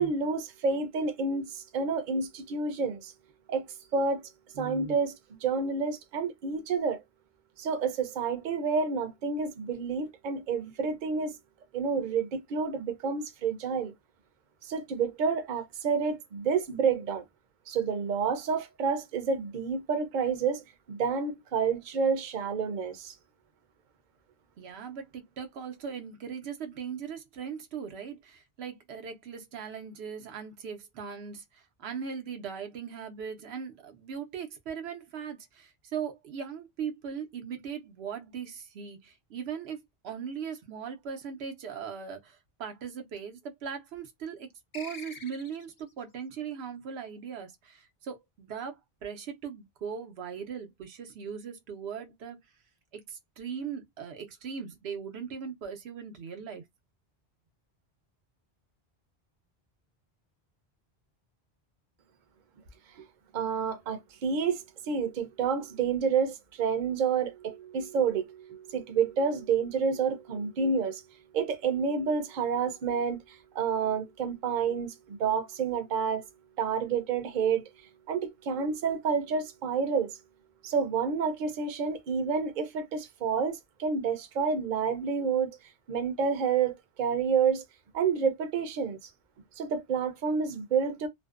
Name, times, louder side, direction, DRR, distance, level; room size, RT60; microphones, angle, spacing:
voice 1, 0.0-3.1 3.5-3.6 3.9-4.2 4.5-5.1 5.4-7.0 7.6-11.3 11.7-13.9 14.7-17.2 17.7-20.6 20.9-23.1 63.3-71.0 71.3-73.2 73.5-76.2 76.6-77.6 78.1-80.1 80.6-85.6 85.9-87.6 87.9-89.0 89.6-91.1, right 5 dB, 55° right, 0.7 m, -29 dB
voice 2, 24.6-39.8 40.0-44.5 44.7-52.4 52.9-56.6, right 7 dB, 90° right, 0.9 m, -39 dB
sound 1, 44.7-45.9, left 4 dB, 45° left, 0.4 m, -45 dB
2.5 x 2.0 x 2.3 m
omnidirectional pair, 1.0 m